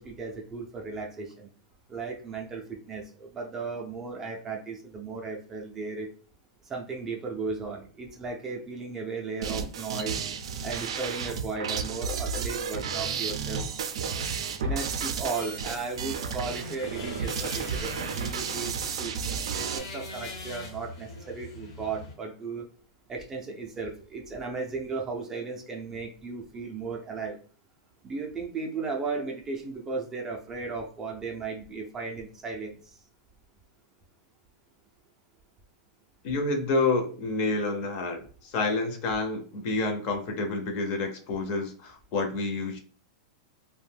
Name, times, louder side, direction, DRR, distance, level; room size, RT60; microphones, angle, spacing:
voice 1, 0.0-1.5 1.9-6.1 6.7-10.2 10.6-13.7 14.6-22.6 23.1-27.4 28.0-33.0, right 4 dB, 15° right, 1 dB, 0.4 m, -35 dB
sound 1, 9.4-19.8, right 6 dB, 85° right, 0.4 m, -32 dB
sound 2, 15.3-22.1, left 2 dB, 80° left, 1.1 m, -43 dB
voice 2, 36.2-42.8, left 3 dB, 40° left, 5 dB, 0.5 m, -29 dB
2.5 x 2.1 x 3.2 m, 0.43 s
supercardioid pair, 160°, 3 cm